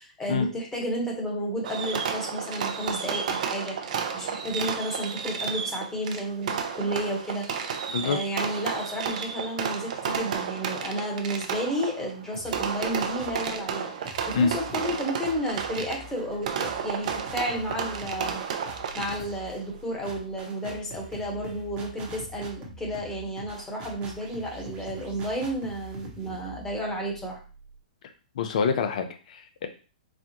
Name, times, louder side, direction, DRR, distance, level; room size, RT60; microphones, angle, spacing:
voice 1, 0.0-7.8 8.0-18.4 18.9-27.4, equal, 10° left, -1 dB, 1.2 m, -32 dB
Fireworks, 1.6-19.4, right 6 dB, 60° right, 0.6 m, -32 dB
sound 1, 12.3-13.6 14.0-27.7, right 1 dB, 30° right, 1.1 m, -44 dB
voice 2, 28.4-29.7, left 5 dB, 60° left, 8 dB, 0.6 m, -26 dB
4.2 x 2.3 x 2.9 m, 0.36 s
hypercardioid pair, 125°, 4 cm